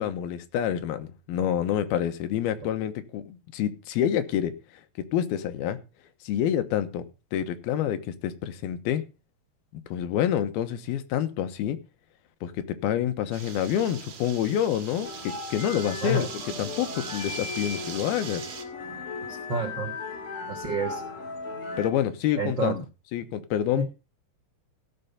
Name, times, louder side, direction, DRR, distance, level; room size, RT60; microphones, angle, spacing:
voice 1, 0.0-4.6 5.0-5.8 6.2-7.1 7.3-9.0 9.7-11.8 12.4-16.3 16.6-18.4 21.8-22.8 23.1-23.9, left 10 dB, 75° left, 9 dB, 2.9 m, -27 dB
sound 1, 13.3-18.6, right 7 dB, 50° right, 2.8 m, -40 dB
sound 2, 15.0-21.9, left 4 dB, 55° left, 3.6 m, -37 dB
voice 2, 19.3-19.9 20.5-21.0 22.4-22.7 23.8-23.9, right 2 dB, 80° right, 3 dB, 1.0 m, -29 dB
17.0 x 6.8 x 5.2 m, 0.31 s
omnidirectional pair, 4.7 m